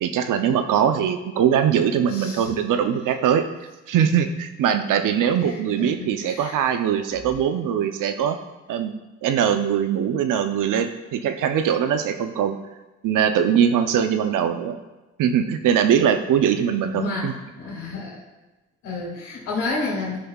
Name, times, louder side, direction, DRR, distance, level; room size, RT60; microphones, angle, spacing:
voice 1, 0.0-3.4 3.9-8.4 8.7-8.9 9.2-12.6 13.0-14.8 15.2-17.3, right 8 dB, 80° right, 8 dB, 0.7 m, -21 dB
voice 2, 2.1-2.5 5.4-6.7 16.9-18.2 18.8-20.2, left 3 dB, 90° left, -8 dB, 2.4 m, -31 dB
12.5 x 5.5 x 2.4 m, 1.1 s
supercardioid pair, 60°, 31 cm